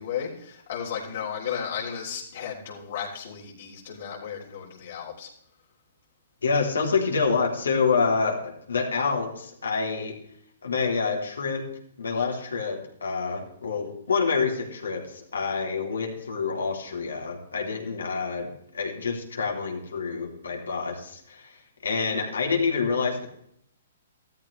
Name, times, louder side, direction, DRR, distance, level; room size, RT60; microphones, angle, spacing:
voice 1, 0.0-5.3, left 8 dB, 65° left, -4 dB, 3.6 m, -34 dB
voice 2, 6.4-10.1 10.6-11.6 12.0-18.5 18.7-21.6 21.8-23.3, left 5 dB, 85° left, 1 dB, 3.2 m, -27 dB
15.0 x 13.0 x 3.4 m, 0.68 s
hypercardioid pair, 135°, 0 cm